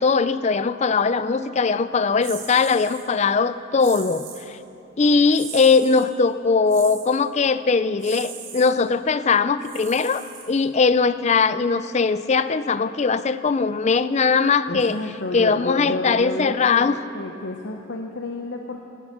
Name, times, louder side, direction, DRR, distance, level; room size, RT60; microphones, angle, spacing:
voice 1, 0.0-4.6 5.0-15.0 15.3-17.0, left 4 dB, 35° left, 14 dB, 0.4 m, -20 dB
sound 1, 2.2-3.0 3.8-4.5 5.3-6.1 6.7-7.2 8.0-8.7 9.6-10.8, right 7 dB, 70° right, 2.1 m, -39 dB
voice 2, 14.7-18.9, left 2 dB, 60° left, 3 dB, 0.8 m, -31 dB
17.5 x 12.0 x 6.0 m, 2.7 s
head